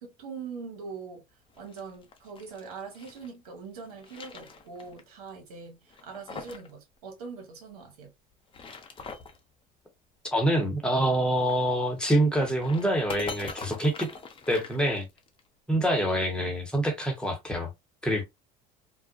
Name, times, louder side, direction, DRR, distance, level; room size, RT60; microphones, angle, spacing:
voice 1, 0.0-1.2 1.6-8.1, right 5 dB, 85° right, 1.0 m, -42 dB
sound 1, 1.5-3.3 3.8-5.0 5.3-5.4 5.9-6.7 7.0-7.1 8.3-9.4 11.3-15.4, left 4 dB, 25° left, 0.6 m, -43 dB
voice 2, 10.3-14.1 14.5-15.1 15.7-17.7 18.0-18.2, right 1 dB, 5° left, 1.0 m, -26 dB
2.3 x 2.2 x 2.4 m
hypercardioid pair, 80°, 19 cm